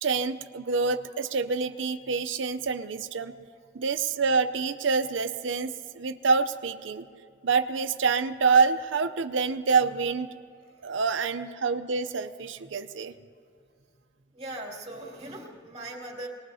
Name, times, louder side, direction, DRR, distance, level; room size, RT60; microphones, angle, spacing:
voice 1, 0.0-3.3 3.7-7.1 7.4-10.3 10.8-13.1, right 5 dB, 75° right, 10 dB, 0.6 m, -26 dB
voice 2, 14.3-16.3, right 1 dB, 30° right, -1 dB, 2.5 m, -40 dB
25.5 x 19.5 x 2.8 m, 2.3 s
head